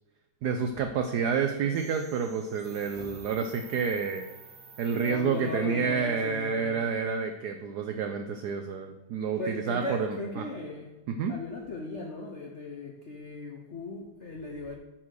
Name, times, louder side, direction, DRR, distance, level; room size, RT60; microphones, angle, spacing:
voice 1, 0.4-4.3 4.8-10.4 11.1-11.3, right 6 dB, 85° right, 6 dB, 0.8 m, -29 dB
sound 1, 1.7-5.6, right 4 dB, 60° right, 1.8 m, -51 dB
voice 2, 4.9-6.8 9.4-10.9 11.3-14.8, left 2 dB, 80° left, 2 dB, 0.6 m, -37 dB
9.4 x 4.5 x 6.3 m, 1.1 s
omnidirectional pair, 2.4 m